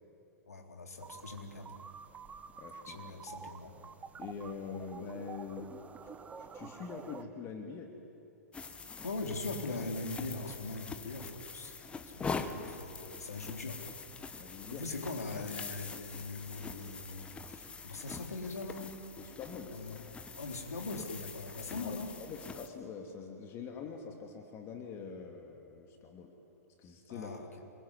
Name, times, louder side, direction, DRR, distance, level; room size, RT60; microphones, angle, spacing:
voice 1, 0.5-1.7 2.8-3.7 9.0-11.7 12.1-13.8 14.5-18.9 19.7-20.0 20.3-22.2 27.1-27.6, left 3 dB, 75° left, 3 dB, 3.9 m, -41 dB
sound 1, 1.0-7.2, right 5 dB, 15° right, 1.2 m, -49 dB
voice 2, 2.6-3.0 3.4-3.5 4.2-5.7 6.4-7.9 12.2-12.6 14.4-14.8 19.2-19.7 21.8-26.3 26.8-27.5, left 5 dB, 30° left, 3 dB, 2.8 m, -44 dB
sound 2, 8.5-22.7, left 4 dB, 15° left, 1.5 m, -44 dB
27.0 x 22.5 x 9.7 m, 2.9 s
figure-of-eight pair, 105°, 9 cm